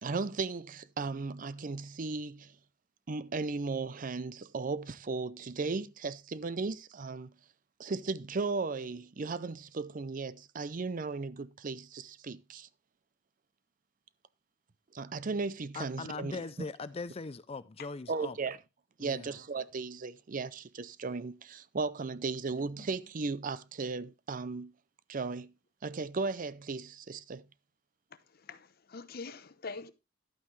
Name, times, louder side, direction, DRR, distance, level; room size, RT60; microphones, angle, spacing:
voice 1, 0.0-2.5 3.1-7.3 7.8-12.7 14.9-16.7 18.1-18.6 19.0-24.7 25.1-25.5 25.8-27.4, right 4 dB, 45° right, 0.5 m, -36 dB
voice 2, 15.7-18.4 19.0-19.3, left 4 dB, 30° left, 0.5 m, -40 dB
voice 3, 28.5-29.9, left 4 dB, 55° left, 0.9 m, -44 dB
11.5 x 8.9 x 3.2 m
head